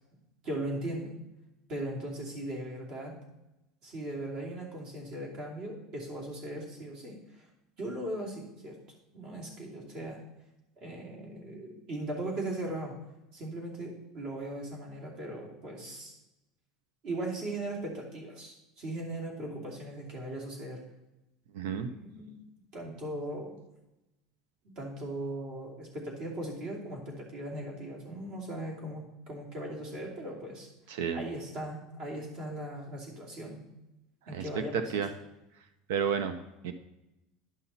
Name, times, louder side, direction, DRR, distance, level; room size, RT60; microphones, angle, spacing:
voice 1, 0.4-1.1 1.7-3.1 3.8-7.5 7.8-8.8 9.1-10.2 10.8-13.0 13.3-16.1 17.0-20.8 21.9-22.3 22.7-23.6 24.8-30.7 31.1-33.6 34.3-35.1, right 1 dB, 50° right, -2 dB, 2.7 m, -38 dB
voice 2, 21.5-21.9 30.9-31.2 34.3-34.4 34.7-35.1 35.9-36.4 36.6-36.7, right 7 dB, 90° right, 9 dB, 0.7 m, -31 dB
11.0 x 5.7 x 4.2 m, 0.95 s
cardioid pair, 160°, 0 cm